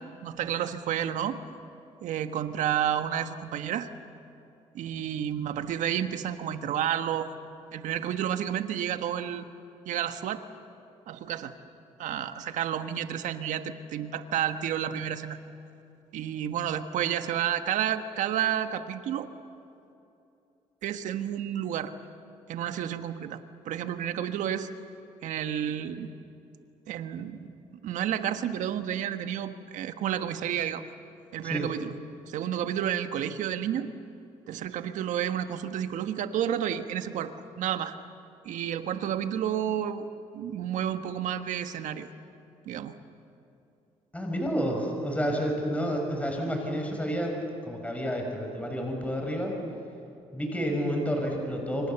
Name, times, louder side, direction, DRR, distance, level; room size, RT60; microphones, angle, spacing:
voice 1, 0.0-1.4 2.0-3.9 4.7-7.3 7.7-9.5 9.8-10.4 11.1-11.5 12.0-15.4 16.1-19.3 20.8-21.9 22.5-24.7 25.2-26.1 26.9-30.8 31.3-32.0 32.3-33.9 34.5-38.0 38.4-40.0 40.3-42.1 42.7-42.9, right 10 dB, 75° right, 9 dB, 1.4 m, -31 dB
voice 2, 44.1-47.4 47.6-49.5 50.3-51.9, equal, 10° left, 2 dB, 5.9 m, -30 dB
28.0 x 25.5 x 7.0 m, 2.8 s
cardioid pair, 80°, 13 cm